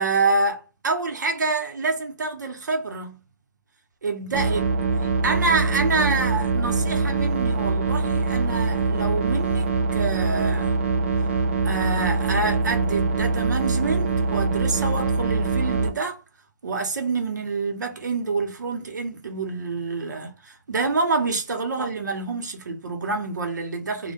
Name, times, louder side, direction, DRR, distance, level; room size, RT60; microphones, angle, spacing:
voice 1, 0.0-3.2 4.0-4.6 5.0-10.8 11.6-16.2 16.6-24.1, right 3 dB, 75° right, 0.7 m, -27 dB
sound 1, 4.3-15.9, right 4 dB, 45° right, 0.5 m, -23 dB
2.1 x 2.1 x 2.8 m
hypercardioid pair, 165°, 10 cm